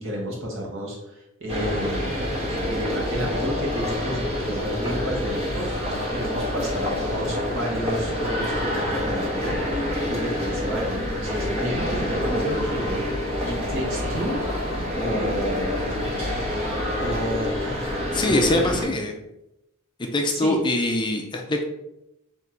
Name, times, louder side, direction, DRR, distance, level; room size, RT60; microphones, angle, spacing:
voice 1, 0.0-2.1 2.7-13.0 13.4-14.4 14.9-15.8 17.0-19.0 20.3-20.6, equal, 65° right, -2 dB, 1.3 m, -31 dB
sound 1, 1.5-18.9, left 1 dB, 30° right, 1.2 m, -27 dB
voice 2, 18.1-19.1 20.0-21.6, left 1 dB, 20° left, 3 dB, 0.4 m, -23 dB
3.9 x 3.0 x 4.3 m, 0.87 s
head